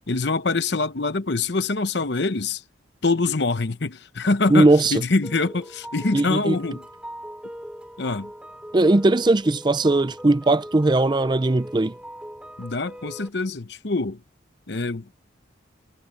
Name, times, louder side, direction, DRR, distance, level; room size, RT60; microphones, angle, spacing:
voice 1, 0.1-2.6 3.0-6.8 8.0-8.3 12.6-14.2 14.7-15.0, left 3 dB, 60° left, 0.9 m, -24 dB
voice 2, 4.5-5.0 6.1-6.6 8.7-11.9, right 2 dB, 20° right, 0.4 m, -19 dB
sound 1, 5.2-13.3, equal, 5° right, 4.6 m, -41 dB
head